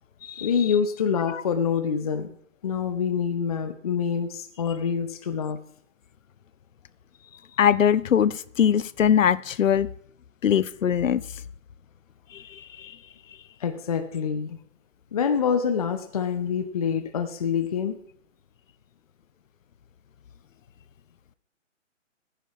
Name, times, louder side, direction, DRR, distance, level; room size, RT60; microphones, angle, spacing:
voice 1, 0.4-2.3 2.6-5.6 13.6-14.6 15.1-18.0, left 7 dB, 30° left, 9 dB, 0.7 m, -26 dB
voice 2, 7.6-9.9 10.4-11.2 12.3-13.0, left 9 dB, 85° left, 19 dB, 0.6 m, -22 dB
15.0 x 10.0 x 3.1 m, 0.65 s
hypercardioid pair, 160°, 38 cm